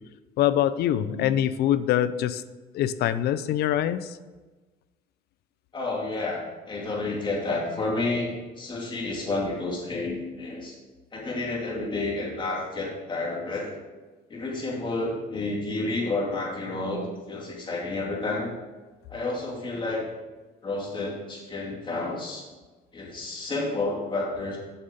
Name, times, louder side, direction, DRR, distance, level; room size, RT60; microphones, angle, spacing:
voice 1, 0.4-2.4 2.7-4.2, left 11 dB, 70° left, 14 dB, 0.5 m, -24 dB
voice 2, 0.9-1.3 5.7-10.8 11.1-13.7 14.3-18.5 19.1-20.1 20.6-22.4 22.9-24.6, left 2 dB, 30° left, -2 dB, 2.6 m, -30 dB
7.4 x 6.7 x 5.2 m, 1.3 s
cardioid pair, 110°, 17 cm